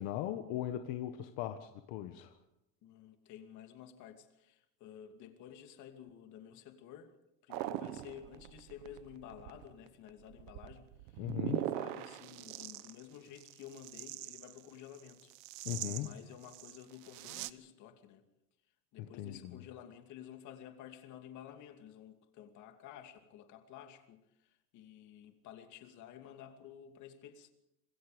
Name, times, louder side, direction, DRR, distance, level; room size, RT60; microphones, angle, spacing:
voice 1, 0.0-2.3 11.2-11.6 15.6-16.2 19.0-19.4, left 12 dB, 75° left, 7 dB, 1.5 m, -38 dB
voice 2, 2.8-7.1 7.4-15.3 16.0-18.2 18.9-27.5, left 10 dB, 55° left, 6 dB, 2.7 m, -52 dB
sound 1, 7.5-17.5, right 15 dB, 70° right, 1.1 m, -42 dB
26.5 x 21.5 x 5.2 m, 0.86 s
cardioid pair, 165°, 36 cm